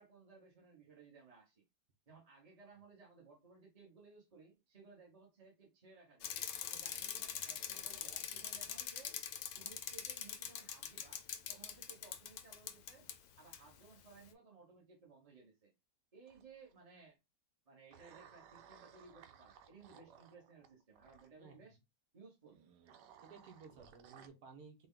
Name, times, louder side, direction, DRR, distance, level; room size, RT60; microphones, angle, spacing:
voice 1, 0.0-1.6 2.1-6.3 6.7-9.1 9.6-13.1 13.4-15.7 16.1-17.2 17.7-21.8 22.1-22.6, right 4 dB, 25° right, 1.0 m, -60 dB
Bicycle, 6.2-13.2 13.5-13.6, left 9 dB, 70° left, 1.1 m, -43 dB
sound 1, 16.3-16.7 17.9-21.3 22.5-24.3, right 8 dB, 85° right, 1.3 m, -60 dB
voice 2, 21.4-21.7 23.2-24.9, right 5 dB, 70° right, 1.6 m, -56 dB
4.2 x 2.3 x 3.7 m
omnidirectional pair, 1.8 m